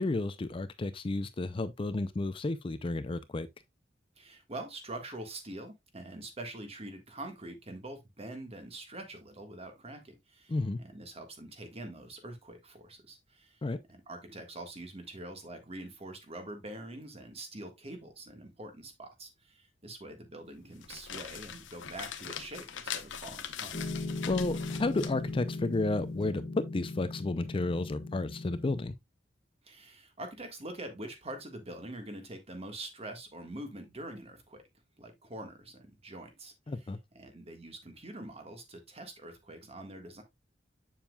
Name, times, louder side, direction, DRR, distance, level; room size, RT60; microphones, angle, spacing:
voice 1, 0.0-3.5 10.5-10.8 13.6-13.8 24.3-28.9 36.7-37.0, left 2 dB, 30° left, 0.5 m, -32 dB
voice 2, 4.2-13.6 13.9-23.8 29.6-34.6 35.0-36.9 37.1-40.2, right 1 dB, 35° right, 1.6 m, -45 dB
sound 1, 20.6-26.3, left 8 dB, 90° left, 0.8 m, -42 dB
Piano, 23.7-28.8, left 2 dB, 50° left, 1.6 m, -38 dB
7.3 x 7.2 x 2.3 m
head